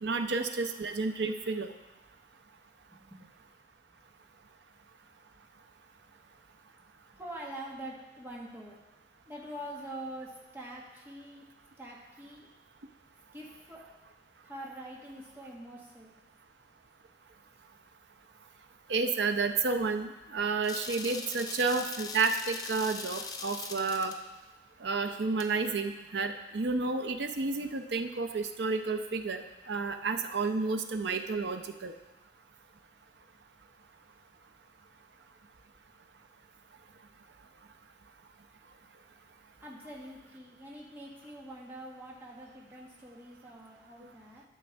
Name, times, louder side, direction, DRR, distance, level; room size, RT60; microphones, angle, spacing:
voice 1, 0.0-1.7 18.9-24.1 24.8-31.9, right 4 dB, 80° right, 7 dB, 0.6 m, -31 dB
voice 2, 2.9-3.3 7.1-8.8 9.3-11.5 11.8-12.5 13.3-13.8 14.4-16.1 39.6-44.4, right 1 dB, 15° right, -4 dB, 1.4 m, -45 dB
sound 1, 20.6-24.2 25.4-25.5, left 4 dB, 20° left, 0.5 m, -41 dB
12.5 x 6.3 x 3.5 m, 1.1 s
head